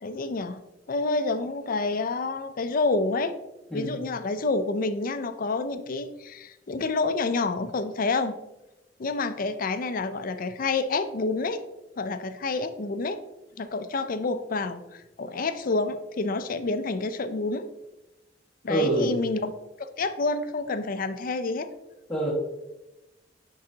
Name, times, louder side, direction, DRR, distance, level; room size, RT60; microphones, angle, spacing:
voice 1, 0.0-0.6 0.9-3.4 3.7-8.4 9.0-11.6 12.0-13.2 13.6-17.7 18.6-19.5 19.8-21.7, left 3 dB, 50° left, 11 dB, 0.5 m, -28 dB
voice 2, 3.7-4.0 18.7-19.2 22.1-22.3, right 2 dB, 5° left, -7 dB, 1.8 m, -26 dB
10.5 x 3.8 x 2.8 m, 0.97 s
head